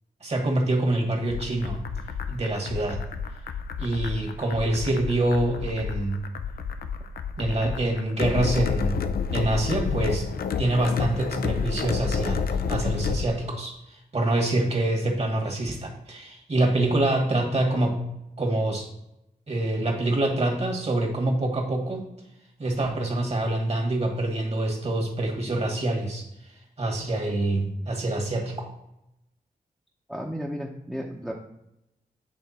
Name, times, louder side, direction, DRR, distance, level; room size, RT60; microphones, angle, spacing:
voice 1, 0.2-1.8 2.3-3.0 3.8-6.2 7.4-9.0 9.3-10.3 10.6-18.0 18.4-18.9 19.5-22.1 22.6-26.3 26.8-28.7, right 1 dB, 45° right, 1 dB, 1.7 m, -26 dB
sound 1, 1.3-13.2, left 6 dB, 75° left, 0.5 m, -30 dB
voice 2, 30.1-31.3, equal, 5° right, -2 dB, 0.8 m, -33 dB
8.8 x 3.4 x 4.2 m, 0.84 s
cardioid pair, 80°, 16 cm